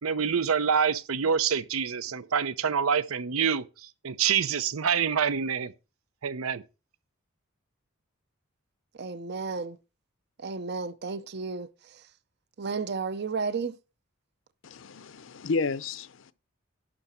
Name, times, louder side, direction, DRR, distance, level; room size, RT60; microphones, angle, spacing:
voice 1, 0.0-5.7 6.2-6.6, right 7 dB, 90° right, 0.7 m, -26 dB
voice 2, 9.0-9.8 10.4-12.0 12.6-13.8, right 4 dB, 50° right, 0.6 m, -33 dB
voice 3, 14.6-16.3, left 4 dB, 65° left, 0.6 m, -32 dB
11.5 x 3.9 x 7.4 m
head